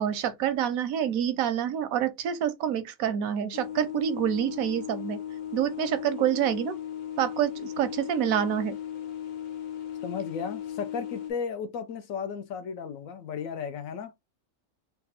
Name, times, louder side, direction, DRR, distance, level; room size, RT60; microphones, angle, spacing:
voice 1, 0.0-5.2 5.5-6.8 7.2-8.8, right 10 dB, 90° right, 1.1 m, -27 dB
sound 1, 3.5-11.3, left 10 dB, 60° left, 0.5 m, -37 dB
voice 2, 10.0-14.1, left 6 dB, 80° left, 1.0 m, -34 dB
3.3 x 2.3 x 4.1 m
omnidirectional pair, 1.4 m